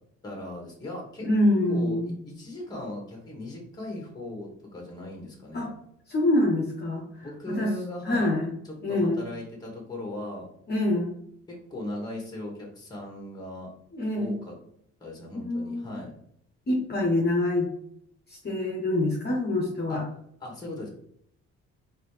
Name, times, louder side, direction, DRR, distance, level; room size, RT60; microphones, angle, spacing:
voice 1, 0.2-1.3 1.7-5.7 7.2-8.3 8.6-10.5 11.5-13.7 14.2-14.5 15.0-16.1 19.9-20.0 20.4-20.9, left 1 dB, 15° left, -1 dB, 1.4 m, -38 dB
voice 2, 1.2-2.2 5.5-5.7 6.1-7.7 8.0-8.5 8.8-9.2 10.7-11.1 13.9-14.4 15.3-15.9 16.7-17.7 18.3-20.0, left 1 dB, 35° left, -1 dB, 0.9 m, -25 dB
4.0 x 2.8 x 3.2 m, 0.71 s
cardioid pair, 90°, 30 cm